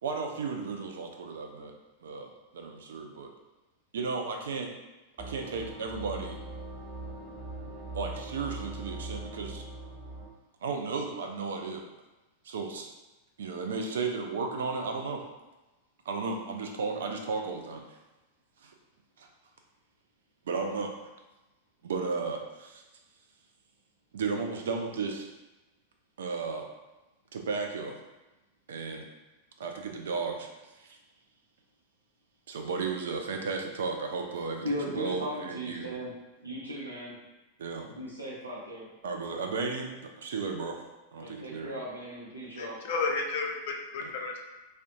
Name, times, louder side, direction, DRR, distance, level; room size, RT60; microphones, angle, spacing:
voice 1, 0.0-1.7 2.0-3.3 3.9-4.7 5.3-6.4 7.9-9.6 10.6-11.8 12.4-12.9 13.4-15.2 16.1-18.0 18.6-18.7 19.2-19.3 20.5-21.0 21.8-22.8 24.1-25.3 26.2-26.7 27.3-28.0 28.7-29.1 29.6-30.5 30.8-31.0 32.5-34.6 34.9-35.9 37.6-37.9 39.0-40.8 41.1-41.7 44.0-44.1, right 4 dB, 60° right, 3 dB, 0.3 m, -34 dB
sound 1, 5.2-10.3, right 2 dB, 30° right, 0.9 m, -41 dB
voice 2, 34.6-36.1 36.4-37.2 37.9-38.9 41.2-42.8, equal, 85° right, -6 dB, 0.7 m, -37 dB
voice 3, 42.6-44.4, left 4 dB, 55° left, 2 dB, 0.4 m, -32 dB
2.5 x 2.2 x 2.6 m, 1.1 s
figure-of-eight pair, 90°, 0 cm